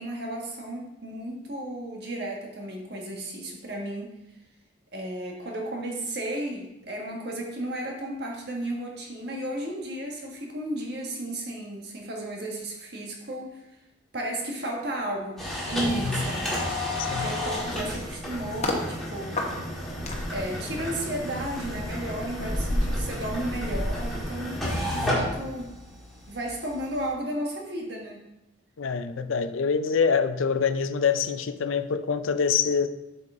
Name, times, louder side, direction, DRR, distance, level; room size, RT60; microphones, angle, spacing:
voice 1, 0.0-4.2 4.9-13.7 14.1-16.5 17.1-19.4 20.3-25.7 26.3-28.2, right 1 dB, 55° right, 1.5 m, -33 dB
sound 1, 15.4-27.1, left 1 dB, ahead, 1.9 m, -32 dB
sound 2, 17.5-18.8 19.4-24.9 25.3-25.5, left 1 dB, 35° left, 1.0 m, -32 dB
voice 2, 24.9-25.3 28.8-32.9, left 6 dB, 90° left, 0.5 m, -25 dB
7.6 x 5.7 x 3.7 m
head